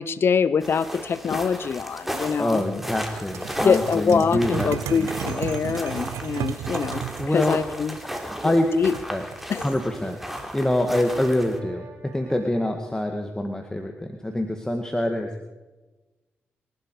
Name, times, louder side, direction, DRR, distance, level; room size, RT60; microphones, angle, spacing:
voice 1, 0.0-2.6 3.6-7.0 7.3-8.0 8.7-9.0 9.5-9.7, left 6 dB, 55° left, 16 dB, 0.7 m, -24 dB
sound 1, 0.6-11.6, equal, 5° right, 3.2 m, -35 dB
voice 2, 2.4-5.1 7.2-7.6 8.0-8.7 9.1-9.2 9.6-10.2 10.5-15.5, left 1 dB, 15° left, 3 dB, 2.1 m, -26 dB
sound 2, 3.2-7.3 8.9-9.7, right 11 dB, 85° right, 0.6 m, -33 dB
Brass instrument, 9.3-13.5, right 4 dB, 55° right, 6.2 m, -49 dB
25.0 x 11.5 x 4.9 m, 1.1 s
supercardioid pair, 50°, 5 cm